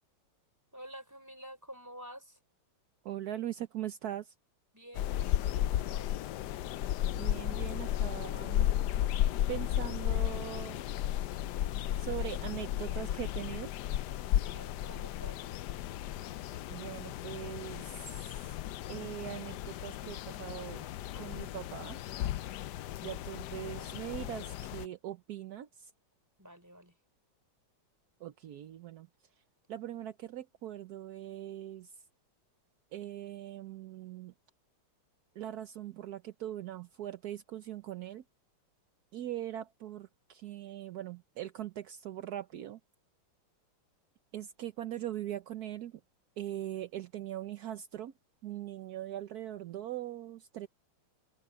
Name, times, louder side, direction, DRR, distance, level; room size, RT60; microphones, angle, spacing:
voice 1, 0.7-2.4 4.7-6.2 14.4-15.6 23.3-23.9 26.4-27.0, equal, 5° right, 5.4 m, -50 dB
voice 2, 3.0-4.3 7.1-8.7 9.5-11.0 12.0-13.7 16.7-18.5 18.9-20.9 21.2-22.0 23.0-25.9 28.2-29.1 29.7-32.0 32.9-34.3 35.3-38.2 39.1-42.8 44.3-46.0 46.4-48.1 48.4-50.7, right 12 dB, 65° right, 1.0 m, -41 dB
sound 1, 5.0-24.9, left 12 dB, 85° left, 0.9 m, -34 dB
omnidirectional pair, 2.4 m